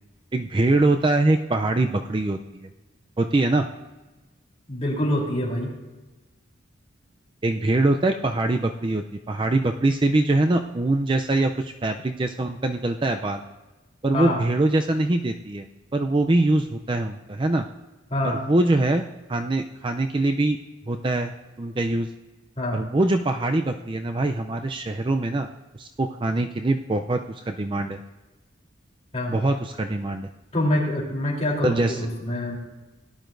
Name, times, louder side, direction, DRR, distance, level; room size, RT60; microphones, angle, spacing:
voice 1, 0.3-2.7 3.2-3.7 7.4-13.4 14.0-15.7 15.9-17.7 18.2-20.6 20.9-21.3 21.6-22.1 22.7-25.5 25.7-28.0 29.3-30.3 31.6-32.1, right 2 dB, 25° right, 5 dB, 0.4 m, -23 dB
voice 2, 4.7-5.7 14.1-14.4 18.1-18.4 22.6-22.8 29.1-29.4 30.5-32.6, left 1 dB, 30° left, -4 dB, 3.4 m, -25 dB
18.0 x 11.0 x 2.6 m, 1.1 s
head